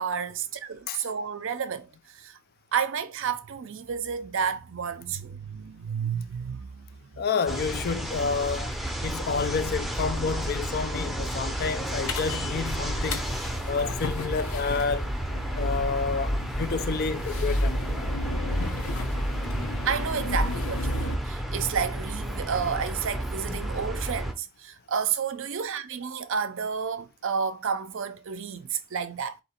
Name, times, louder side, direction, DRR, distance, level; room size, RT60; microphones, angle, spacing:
voice 1, 0.0-2.4 2.7-7.2 19.9-29.4, right 7 dB, 60° right, 0.5 m, -31 dB
voice 2, 7.2-8.8 9.0-13.3 13.7-15.1 15.5-17.8 18.6-18.9, left 5 dB, 45° left, 0.4 m, -29 dB
sound 1, 7.5-24.3, right 1 dB, ahead, 0.6 m, -32 dB
sound 2, 12.1-21.2, left 1 dB, 65° left, 0.7 m, -32 dB
3.9 x 2.8 x 4.3 m
head